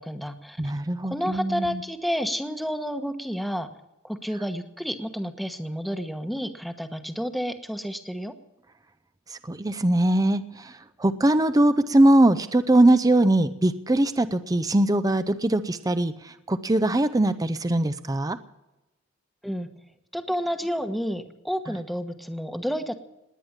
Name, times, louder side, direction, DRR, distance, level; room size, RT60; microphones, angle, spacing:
voice 1, 0.0-0.7 1.0-3.7 4.0-8.3 19.4-19.7 20.1-23.0, equal, ahead, 7 dB, 1.1 m, -30 dB
voice 2, 0.6-1.8 9.3-10.7 11.0-18.4, right 1 dB, 20° right, 12 dB, 0.6 m, -21 dB
19.5 x 9.7 x 7.3 m, 0.97 s
head